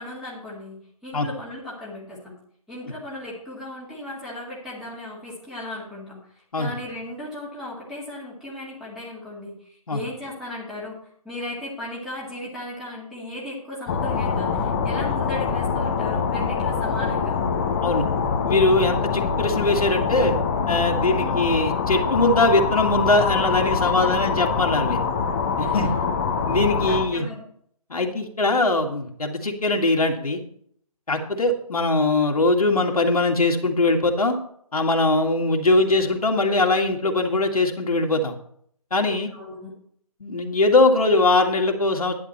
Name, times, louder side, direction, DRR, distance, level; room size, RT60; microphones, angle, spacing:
voice 1, 0.0-2.4 2.7-11.0 11.2-17.4 21.0-21.5 23.8-24.1 25.6-25.9 26.9-27.4 39.3-39.7, left 1 dB, ahead, -7 dB, 2.1 m, -36 dB
sound 1, 13.9-27.0, left 5 dB, 20° left, 0.9 m, -24 dB
voice 2, 18.4-20.3 20.7-25.0 25.6-25.9 26.5-27.3 27.9-30.4 31.1-34.4 34.7-38.3 38.9-39.3 40.2-42.1, left 2 dB, 70° left, 2 dB, 2.1 m, -21 dB
11.0 x 10.0 x 4.3 m, 0.65 s
figure-of-eight pair, 155°, 19 cm